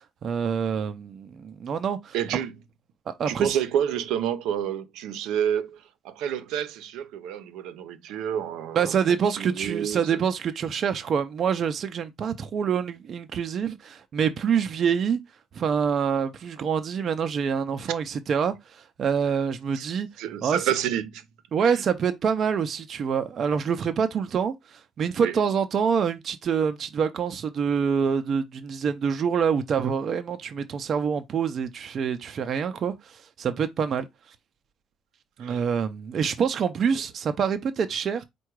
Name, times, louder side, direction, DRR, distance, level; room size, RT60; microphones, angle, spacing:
voice 1, 0.0-2.1 3.1-3.6 8.7-15.2 15.5-20.1 20.4-20.6 21.5-34.1 35.4-38.2, right 7 dB, 35° right, 0.4 m, -26 dB
voice 2, 2.1-2.5 3.3-9.0 9.4-10.2 19.7-19.8 20.2-21.3 21.6-21.8 25.2-25.4 35.4-35.7, right 9 dB, 80° right, 0.6 m, -29 dB
4.7 x 2.2 x 4.5 m
cardioid pair, 180°, 0 cm